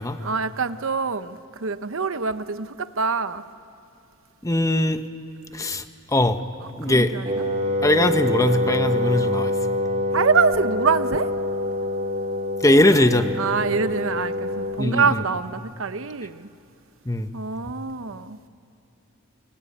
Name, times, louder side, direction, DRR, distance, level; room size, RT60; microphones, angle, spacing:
voice 1, 0.2-3.4 6.8-7.4 10.1-11.3 13.4-16.5 17.3-18.4, right 5 dB, 75° right, 0.9 m, -25 dB
voice 2, 4.4-5.0 5.5-5.8 6.1-6.4 6.8-7.1 7.8-9.5 12.6-13.3 14.8-15.2 17.1-17.3, left 1 dB, 15° left, 1.1 m, -20 dB
Wind instrument woodwind instrument, 7.2-14.9, left 1 dB, 35° right, 3.4 m, -25 dB
25.0 x 22.5 x 8.7 m
head